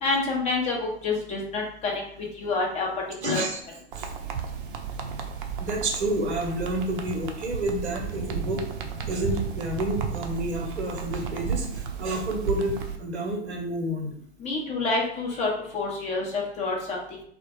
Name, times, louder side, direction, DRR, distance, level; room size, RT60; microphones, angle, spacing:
voice 1, 0.0-2.9 3.2-3.4 14.4-17.2, left 3 dB, 20° left, -2 dB, 0.5 m, -28 dB
voice 2, 3.2-3.6 3.9-4.1 5.6-8.6 9.1-14.1, right 1 dB, 85° right, 2 dB, 0.7 m, -29 dB
sound 1, 3.9-13.0, right 7 dB, 50° right, 0.4 m, -33 dB
2.1 x 2.0 x 3.0 m, 0.65 s
hypercardioid pair, 105°, 33 cm